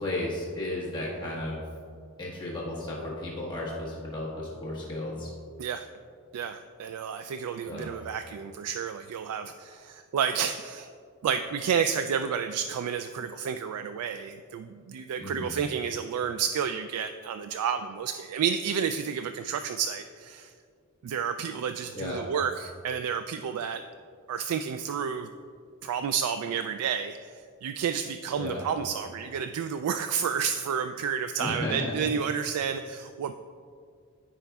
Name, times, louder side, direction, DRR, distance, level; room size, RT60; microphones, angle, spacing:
voice 1, 0.0-1.6 2.2-5.3 7.7-7.9 15.2-15.5 21.9-22.2 28.3-28.6 31.4-31.9, left 1 dB, 20° left, -6 dB, 1.4 m, -34 dB
voice 2, 6.3-10.9 11.2-20.5 21.0-23.8 24.3-25.3 25.8-33.4, right 7 dB, 85° right, 9 dB, 0.3 m, -30 dB
14.5 x 5.0 x 2.3 m, 2.2 s
head